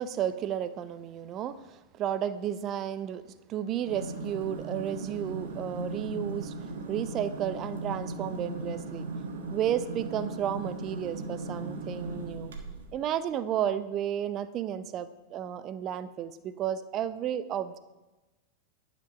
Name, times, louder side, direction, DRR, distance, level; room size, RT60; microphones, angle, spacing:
voice 1, 0.0-3.2 3.5-6.5 6.9-9.0 9.5-12.5 12.9-17.8, right 10 dB, 35° right, 13 dB, 0.6 m, -32 dB
sound 1, 3.8-13.0, right 2 dB, 60° right, 1.3 m, -37 dB
11.0 x 5.2 x 5.7 m, 1.1 s
figure-of-eight pair, 90°, 0 cm